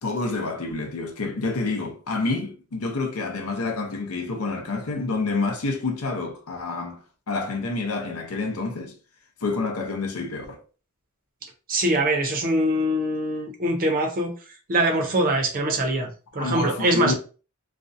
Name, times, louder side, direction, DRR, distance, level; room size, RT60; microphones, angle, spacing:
voice 1, 0.0-7.0 7.3-8.9 9.4-10.6 16.3-17.1, left 3 dB, 75° left, 0.6 m, -28 dB
voice 2, 11.7-14.3 14.7-17.1, right 1 dB, 40° right, 0.6 m, -23 dB
2.5 x 2.1 x 2.6 m
head